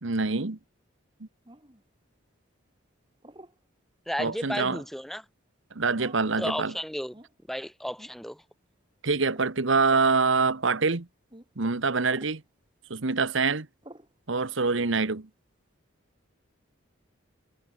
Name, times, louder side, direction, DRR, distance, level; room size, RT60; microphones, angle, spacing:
voice 1, 0.0-0.6 1.2-1.3 4.2-4.8 5.7-6.7 9.0-11.1 11.6-12.4 12.9-13.7 14.3-15.3, right 4 dB, 65° right, 1.2 m, -25 dB
sound 1, 1.5-1.8 3.2-3.6 4.7-5.0 6.0-6.3 7.1-7.3 8.0-8.2 9.3-9.5 9.9-10.1 11.3-11.5 12.1-12.4 13.8-14.1, right 1 dB, 25° right, 3.1 m, -49 dB
voice 2, 4.1-5.3 6.4-7.1 7.5-8.4, equal, ahead, 1.6 m, -33 dB
head